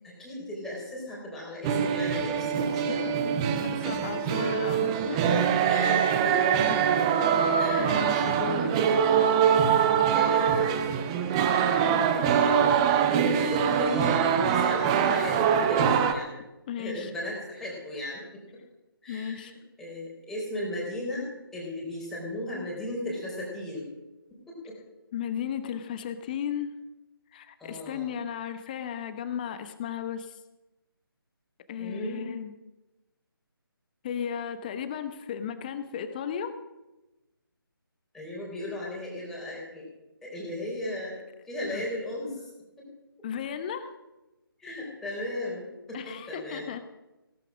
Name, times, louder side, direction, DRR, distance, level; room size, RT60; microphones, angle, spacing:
voice 1, 0.0-3.3 3.8-3.9 5.7-6.6 7.6-7.9 9.1-9.5 10.1-10.8 11.1-16.3 16.8-18.6 19.0-23.9 24.5-24.8 27.6-28.1 31.8-32.3 38.1-39.9 40.2-41.2 41.5-42.5 42.8-42.9 44.6-46.6, left 1 dB, 5° left, -6 dB, 4.2 m, -36 dB
sound 1, 1.6-16.1, right 7 dB, 15° right, 0.7 m, -24 dB
voice 2, 3.7-5.5 7.2-7.3 7.8-8.9 16.7-17.1 19.1-19.5 25.1-26.7 27.3-30.4 31.7-32.5 34.0-36.6 41.7-41.8 43.2-43.9 45.9-46.8, left 8 dB, 20° left, 10 dB, 1.0 m, -35 dB
17.5 x 11.5 x 6.2 m, 1.0 s
figure-of-eight pair, 150°, 12 cm